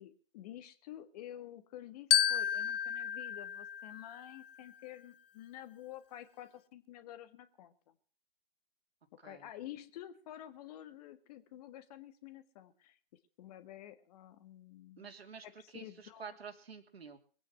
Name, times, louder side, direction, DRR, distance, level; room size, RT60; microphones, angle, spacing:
voice 1, 0.0-7.7 9.2-13.0 13.4-15.1 15.4-16.3, left 12 dB, 40° left, 11 dB, 1.6 m, -50 dB
Glockenspiel, 2.1-4.6, left 9 dB, 65° left, 0.7 m, -32 dB
voice 2, 9.2-9.5 15.0-15.5 15.7-17.2, right 6 dB, 75° right, 6 dB, 3.0 m, -49 dB
22.0 x 9.1 x 5.6 m, 0.42 s
figure-of-eight pair, 125°, 31 cm